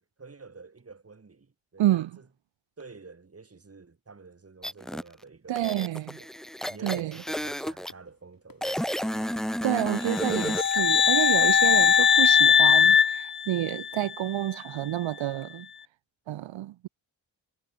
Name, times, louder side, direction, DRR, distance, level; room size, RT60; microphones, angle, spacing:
voice 1, 0.0-2.3 2.8-5.9 6.1-6.3 6.7-9.2, right 4 dB, 30° right, 2.7 m, -49 dB
voice 2, 1.8-2.1 5.5-6.2 6.8-7.2 9.6-15.7 16.3-16.9, right 14 dB, 75° right, 0.9 m, -29 dB
sound 1, 4.6-5.0 5.5-7.9 8.6-10.8, equal, ahead, 0.9 m, -31 dB
sound 2, 6.8-12.6, left 5 dB, 45° left, 4.3 m, -55 dB
sound 3, 10.1-14.1, left 7 dB, 25° left, 0.4 m, -20 dB
cardioid pair, 55°, 45 cm